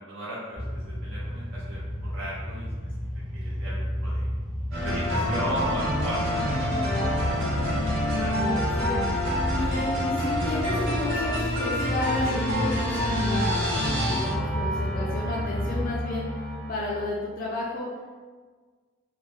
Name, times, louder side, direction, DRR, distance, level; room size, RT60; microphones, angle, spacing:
voice 1, 0.1-2.9 3.3-4.3 4.8-7.5 7.9-8.7, right 1 dB, 70° right, -8 dB, 0.5 m, -37 dB
sound 1, 0.5-15.8, equal, 45° right, 0.8 m, -33 dB
sound 2, 4.7-17.1, left 1 dB, 85° right, 1.2 m, -27 dB
voice 2, 8.5-9.1 9.5-16.2 16.7-17.9, left 2 dB, 45° left, -4 dB, 0.3 m, -32 dB
3.0 x 2.0 x 2.4 m, 1.5 s
head